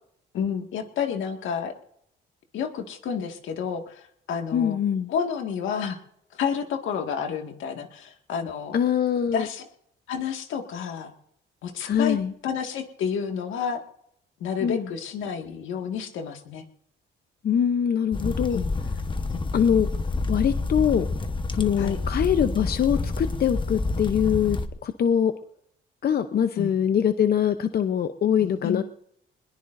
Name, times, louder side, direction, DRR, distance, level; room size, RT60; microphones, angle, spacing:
voice 1, 0.3-1.7 2.5-4.8 5.1-6.0 6.3-8.8 9.3-9.7 10.1-11.1 11.6-12.2 12.4-13.8 14.4-16.6 18.5-18.7 19.3-19.5 21.8-22.0 26.6-26.8 28.4-28.8, left 7 dB, 80° left, 4 dB, 1.9 m, -30 dB
voice 2, 4.5-5.1 8.7-9.5 11.8-12.3 14.6-14.9 17.4-18.6 19.5-19.9 20.3-21.1 21.5-25.3 26.0-28.8, left 8 dB, 50° left, 9 dB, 0.7 m, -23 dB
sound 1, 18.1-24.7, left 3 dB, 25° left, 1.2 m, -28 dB
21.5 x 21.0 x 2.6 m, 0.74 s
cardioid pair, 90°, 20 cm